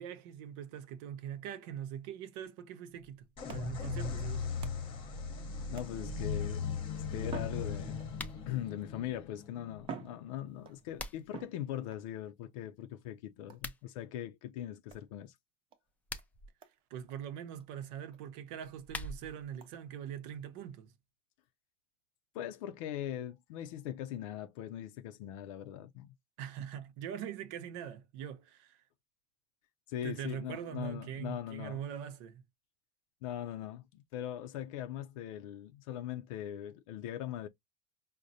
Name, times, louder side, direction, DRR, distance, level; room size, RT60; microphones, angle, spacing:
voice 1, 0.0-4.5 16.9-20.9 26.4-28.8 30.0-32.4, right 9 dB, 65° right, 0.7 m, -42 dB
sound 1, 3.0-5.1 5.7-6.3 7.2-8.3 9.2-9.3 9.8-10.8 11.3-12.1 13.5-13.8 14.9-15.1 15.7-15.8 16.2-16.3 16.6-16.8 17.1-17.2 17.6-17.7 18.1-18.2 18.6-18.7 19.6-19.7, right 6 dB, 35° right, 0.7 m, -48 dB
sound 2, 3.4-10.9, left 5 dB, 30° left, 0.9 m, -38 dB
voice 2, 5.6-8.0 8.5-15.4 22.3-26.1 29.9-31.8 33.2-37.5, left 11 dB, 80° left, 0.5 m, -41 dB
sound 3, 8.1-8.4 10.5-11.4 13.5-13.8 15.9-16.5 18.5-19.5, left 2 dB, 10° left, 0.4 m, -44 dB
4.9 x 2.1 x 2.6 m
supercardioid pair, 150°, 17 cm